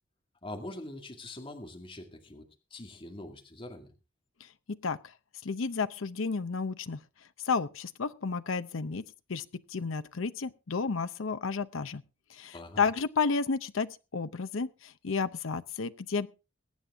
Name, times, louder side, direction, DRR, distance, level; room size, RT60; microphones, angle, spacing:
voice 1, 0.4-2.5 2.7-3.9 12.5-12.9, left 1 dB, 25° left, 3 dB, 2.1 m, -43 dB
voice 2, 5.4-7.0 7.4-9.0 9.3-12.0 12.3-16.3, left 5 dB, 70° left, 12 dB, 0.7 m, -32 dB
23.0 x 9.0 x 3.6 m, 0.31 s
head